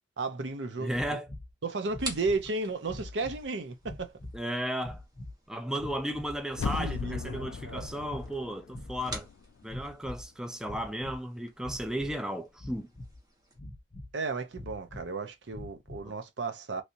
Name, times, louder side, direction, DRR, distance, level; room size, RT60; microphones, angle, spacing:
voice 1, 0.2-1.2 1.6-4.1 6.8-7.9 14.1-16.8, right 3 dB, 75° right, 0.7 m, -34 dB
voice 2, 0.8-1.3 4.3-5.0 5.5-9.3 9.6-12.9 16.1-16.2, equal, 5° right, 0.4 m, -34 dB
sound 1, 0.9-1.5 1.9-2.5 2.8-3.5 3.8-4.4 4.8-5.3 5.8-6.4 6.7-7.4 7.7-8.3 8.7-9.2 9.6-10.3 10.6-11.2 11.6-12.2 12.6-13.2 13.5-14.1 14.5-15.1 15.5-16.1, left 1 dB, 35° left, 0.8 m, -44 dB
sound 2, 2.0-13.6, right 2 dB, 20° right, 1.2 m, -48 dB
sound 3, 6.5-9.4 9.8-9.9, left 5 dB, 90° left, 0.3 m, -37 dB
3.2 x 2.7 x 2.8 m
head